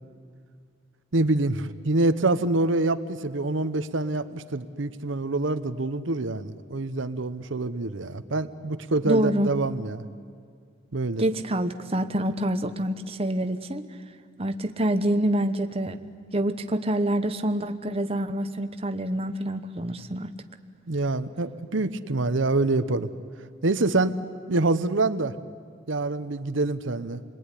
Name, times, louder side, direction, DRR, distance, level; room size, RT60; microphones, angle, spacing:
voice 1, 1.1-10.1 10.9-11.2 20.9-23.1 23.6-24.2 24.5-25.3 25.9-27.2, right 2 dB, 80° right, 11 dB, 1.0 m, -26 dB
voice 2, 9.0-9.5 11.2-13.9 14.4-16.0 16.3-20.3, right 1 dB, 30° right, 7 dB, 1.0 m, -26 dB
28.0 x 20.5 x 10.0 m, 2.2 s
head